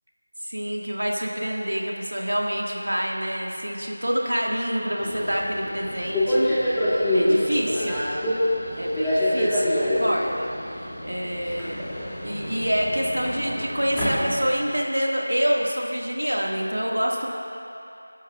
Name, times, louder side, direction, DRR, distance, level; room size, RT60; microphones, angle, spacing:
voice 1, 0.4-8.0 8.8-12.0 12.2-17.3, equal, 75° right, -1 dB, 1.9 m, -27 dB
Subway metro underground, 5.0-14.7, left 1 dB, 5° left, 1.5 m, -26 dB
27.5 x 11.5 x 2.4 m, 2.8 s
figure-of-eight pair, 170°, 0 cm